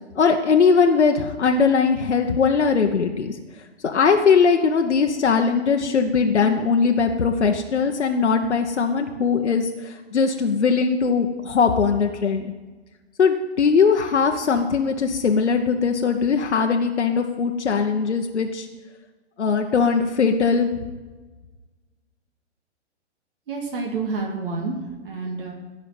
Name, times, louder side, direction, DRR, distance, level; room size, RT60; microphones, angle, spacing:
voice 1, 0.1-3.4 3.8-12.5 13.2-18.7 19.4-20.7, left 5 dB, 70° left, 4 dB, 1.0 m, -20 dB
voice 2, 23.5-25.5, right 4 dB, 50° right, 0 dB, 2.3 m, -29 dB
16.0 x 5.6 x 7.6 m, 1.3 s
figure-of-eight pair, 120°, 35 cm